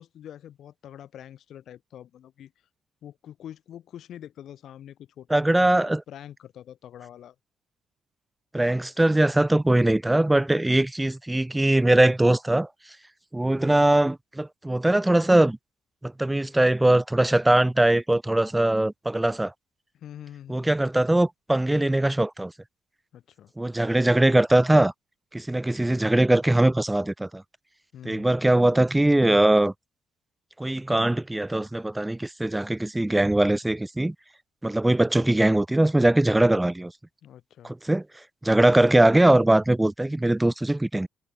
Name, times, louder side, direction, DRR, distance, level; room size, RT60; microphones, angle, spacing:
voice 1, 0.0-2.5 3.0-7.3 19.9-20.7 23.1-23.5 27.9-28.3 37.2-37.7, left 10 dB, 70° left, 3.5 m, -45 dB
voice 2, 5.3-6.0 8.5-12.7 13.3-15.6 16.0-19.5 20.5-22.5 23.6-24.9 25.3-27.4 28.0-29.7 30.6-34.1 34.6-36.9 37.6-38.0 38.4-41.1, right 1 dB, 10° right, 0.9 m, -21 dB
cardioid pair, 80°, 0 cm